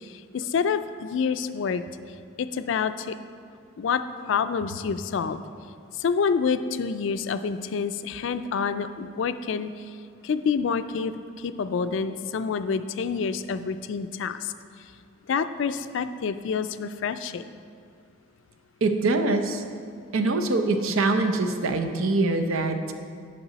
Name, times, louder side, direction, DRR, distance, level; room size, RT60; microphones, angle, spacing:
voice 1, 0.0-1.8 2.4-3.2 3.8-5.4 6.0-9.7 10.2-14.5 15.3-17.4, left 6 dB, 65° left, 11 dB, 0.3 m, -27 dB
voice 2, 18.8-19.6 20.1-22.9, right 2 dB, 85° right, 6 dB, 0.6 m, -24 dB
10.0 x 5.3 x 4.0 m, 2.3 s
head